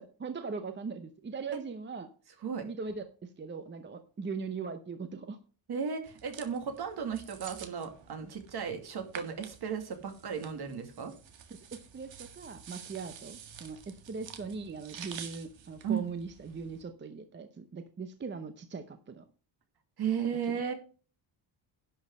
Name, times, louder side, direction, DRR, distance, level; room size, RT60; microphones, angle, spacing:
voice 1, 0.0-2.1 2.6-5.4 8.2-8.3 11.7-19.2, right 5 dB, 25° right, 9 dB, 0.7 m, -40 dB
voice 2, 5.7-11.1 15.8-16.1 20.0-20.7, right 7 dB, 55° right, 6 dB, 2.4 m, -35 dB
sound 1, 6.0-16.8, right 8 dB, 70° right, 1.8 m, -49 dB
11.0 x 6.3 x 5.3 m, 0.37 s
wide cardioid pair, 170°, 46 cm